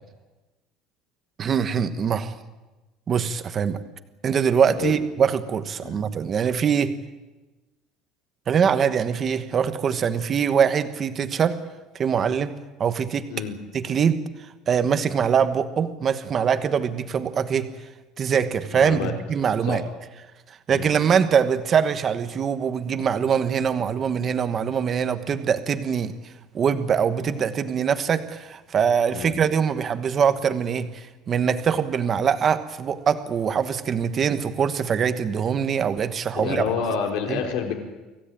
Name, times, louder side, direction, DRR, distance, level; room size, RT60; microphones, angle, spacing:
voice 1, 1.4-2.3 3.1-3.8 4.2-7.0 8.5-11.6 11.9-12.5 12.8-13.3 13.7-14.2 14.7-17.7 18.2-19.8 20.7-26.1 26.5-36.7 37.3-37.4, right 7 dB, 25° right, 11 dB, 1.2 m, -23 dB
voice 2, 18.7-19.1 19.7-19.8 20.7-20.9 29.1-29.4 36.3-37.7, left 6 dB, 65° left, 3 dB, 4.0 m, -28 dB
25.0 x 16.0 x 9.0 m, 1.1 s
cardioid pair, 175°, 0 cm